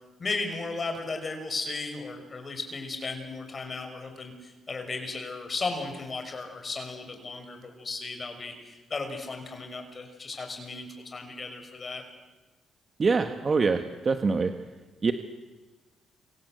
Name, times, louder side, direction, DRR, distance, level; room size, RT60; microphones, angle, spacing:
voice 1, 0.2-12.0, left 3 dB, 35° left, 5 dB, 6.0 m, -35 dB
voice 2, 13.0-14.5 15.0-15.1, right 4 dB, 35° right, 7 dB, 1.6 m, -24 dB
29.0 x 25.0 x 8.1 m, 1.2 s
cardioid pair, 90°, 0 cm